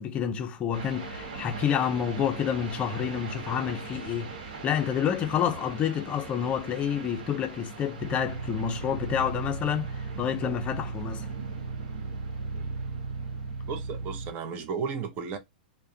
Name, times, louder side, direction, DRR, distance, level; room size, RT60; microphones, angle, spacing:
voice 1, 0.0-4.3 4.6-11.3, left 8 dB, 25° left, 0.5 m, -29 dB
sound 1, 0.7-14.6, right 4 dB, 70° right, 1.0 m, -42 dB
sound 2, 8.0-14.3, right 4 dB, 85° right, 0.5 m, -36 dB
voice 2, 13.6-15.4, right 6 dB, 35° right, 0.6 m, -34 dB
2.3 x 2.1 x 2.6 m
hypercardioid pair, 120°, 5 cm